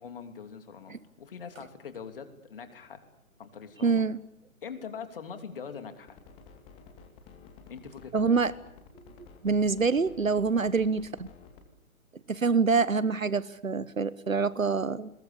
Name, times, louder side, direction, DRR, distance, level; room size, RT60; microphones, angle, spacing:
voice 1, 0.0-0.9 1.2-3.0 3.4-4.0 4.6-6.2 7.7-8.4 10.5-10.7, left 6 dB, 40° left, 8 dB, 3.1 m, -43 dB
voice 2, 3.8-4.2 8.1-8.5 9.4-11.3 12.3-15.1, right 4 dB, 75° right, 18 dB, 1.1 m, -26 dB
sound 1, 6.1-11.6, left 5 dB, 15° left, 2.5 m, -51 dB
30.0 x 22.0 x 7.0 m, 0.85 s
figure-of-eight pair, 140°, 41 cm